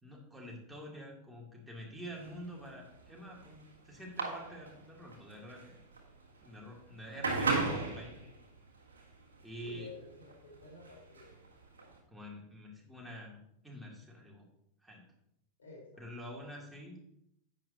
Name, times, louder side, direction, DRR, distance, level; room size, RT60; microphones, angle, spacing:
voice 1, 0.0-5.8 6.4-8.3 9.4-9.9 12.1-14.5 14.8-15.0 16.0-17.0, equal, ahead, -4 dB, 2.7 m, -47 dB
sound 1, 2.1-12.0, right 3 dB, 70° right, 1.6 m, -37 dB
voice 2, 9.6-11.4 15.6-16.1, left 3 dB, 70° left, -1 dB, 3.8 m, -51 dB
10.5 x 8.6 x 2.8 m, 0.76 s
figure-of-eight pair, 90°, 0 cm